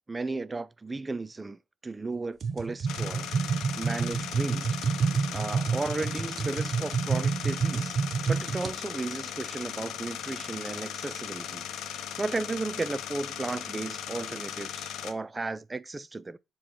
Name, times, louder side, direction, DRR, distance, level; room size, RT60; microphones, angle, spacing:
voice 1, 0.1-4.7 5.3-8.0 8.3-16.4, right 3 dB, 20° right, 0.4 m, -35 dB
sound 1, 2.4-8.7, right 5 dB, 50° right, 0.9 m, -29 dB
sound 2, 2.9-15.1, left 10 dB, 85° left, 0.8 m, -38 dB
7.1 x 3.0 x 4.4 m
cardioid pair, 90°, 0 cm